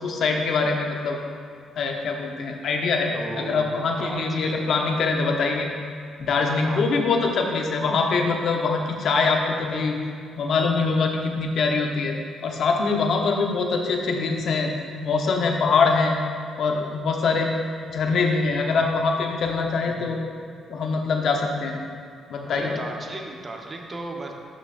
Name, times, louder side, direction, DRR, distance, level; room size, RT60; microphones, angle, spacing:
voice 1, 0.0-1.2 1.8-5.7 6.2-10.0 10.4-12.2 12.4-14.7 15.0-16.1 16.6-17.5 17.9-20.2 20.7-21.8 22.3-22.8, left 4 dB, 65° left, 2 dB, 1.0 m, -23 dB
voice 2, 3.1-3.7 4.0-4.7 6.6-6.9 22.5-24.3, right 2 dB, 30° right, 1 dB, 1.0 m, -35 dB
12.5 x 6.3 x 2.6 m, 2.3 s
cardioid pair, 90°, 0 cm